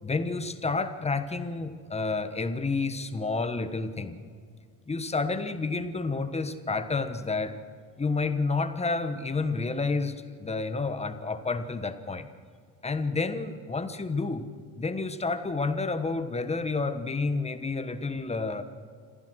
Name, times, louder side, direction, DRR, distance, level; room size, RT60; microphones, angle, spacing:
voice 1, 0.0-4.2 4.9-7.6 8.0-12.3 12.8-14.4 14.8-18.6, left 3 dB, 15° left, 10 dB, 1.3 m, -30 dB
27.0 x 15.5 x 6.3 m, 2.1 s
cardioid pair, 135°, 38 cm